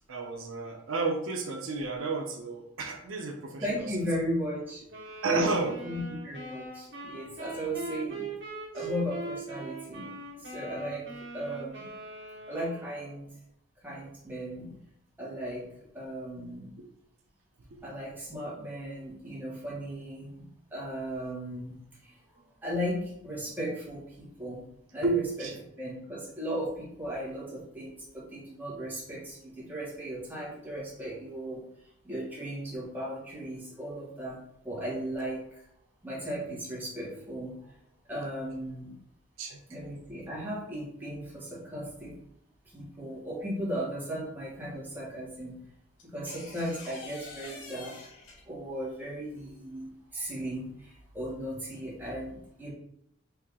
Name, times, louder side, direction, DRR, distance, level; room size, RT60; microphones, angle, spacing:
voice 1, 0.1-3.9 5.2-5.7 8.7-8.9 17.7-17.8 25.0-25.6 39.4-39.6, right 4 dB, 80° right, 3 dB, 0.7 m, -31 dB
voice 2, 3.6-4.8 5.2-8.3 8.7-10.1 10.4-11.1 11.3-11.9 12.5-13.3 13.8-14.7 15.2-15.7 15.9-16.7 17.8-22.2 22.6-24.6 24.9-25.1 25.8-31.6 32.0-34.4 34.6-35.6 36.0-37.6 38.1-38.9 39.7-42.2 42.7-45.6 46.0-48.0 48.5-52.7, equal, 10° right, -6 dB, 1.4 m, -36 dB
sound 1, 4.9-13.3, right 2 dB, 65° right, 1.4 m, -41 dB
sound 2, 46.0-48.7 50.4-50.7, left 3 dB, 75° left, 1.2 m, -46 dB
4.4 x 2.7 x 3.6 m, 0.75 s
head